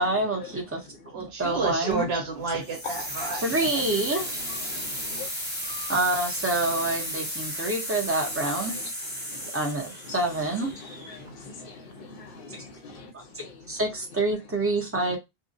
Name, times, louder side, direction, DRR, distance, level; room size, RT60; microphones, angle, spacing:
voice 1, 0.0-2.1 3.4-4.4 5.9-8.8 9.5-10.7 12.5-12.6 13.1-13.2 13.7-15.2, right 2 dB, 15° right, 0.5 m, -27 dB
voice 2, 1.1-3.4, right 3 dB, 70° right, 1.1 m, -30 dB
sound 1, 2.6-11.5, equal, 10° left, 0.8 m, -34 dB
voice 3, 4.1-5.3 8.3-8.9 9.2-9.5 10.1-10.3 10.7-13.8 14.9-15.2, left 4 dB, 65° left, 0.7 m, -42 dB
2.4 x 2.0 x 2.6 m
omnidirectional pair, 1.1 m